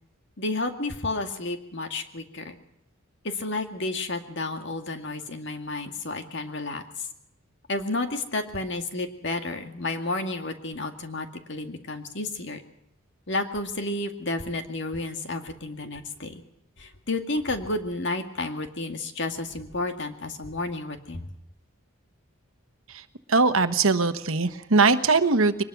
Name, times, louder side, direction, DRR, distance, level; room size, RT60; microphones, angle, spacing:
voice 1, 0.4-2.5 3.2-7.1 7.7-12.6 13.3-16.4 16.8-21.3, left 2 dB, 55° left, 6 dB, 2.1 m, -31 dB
voice 2, 22.9-25.6, right 3 dB, 70° right, 10 dB, 1.2 m, -21 dB
23.0 x 20.0 x 6.0 m, 0.79 s
head